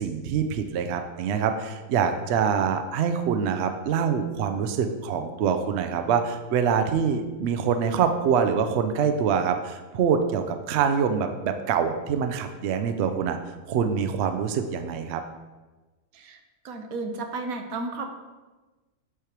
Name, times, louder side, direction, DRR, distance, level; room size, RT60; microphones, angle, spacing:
voice 1, 0.0-13.4 13.7-15.2, right 7 dB, 65° right, 7 dB, 0.7 m, -25 dB
voice 2, 16.6-18.1, right 3 dB, 85° right, 5 dB, 1.2 m, -33 dB
8.2 x 3.4 x 4.5 m, 1.2 s
omnidirectional pair, 1.5 m